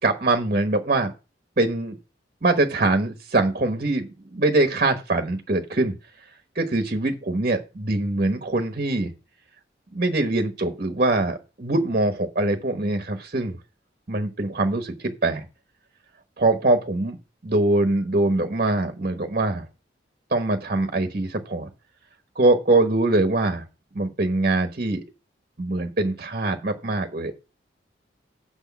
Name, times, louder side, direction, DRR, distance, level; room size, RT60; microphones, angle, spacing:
voice 1, 0.0-1.1 1.6-2.0 2.4-5.9 6.5-9.1 9.9-13.6 14.1-15.4 16.4-17.2 17.4-19.7 20.3-21.7 22.3-23.6 23.9-25.0 25.6-27.3, right 2 dB, 45° right, 7 dB, 1.2 m, -23 dB
7.8 x 6.3 x 5.8 m, 0.30 s
head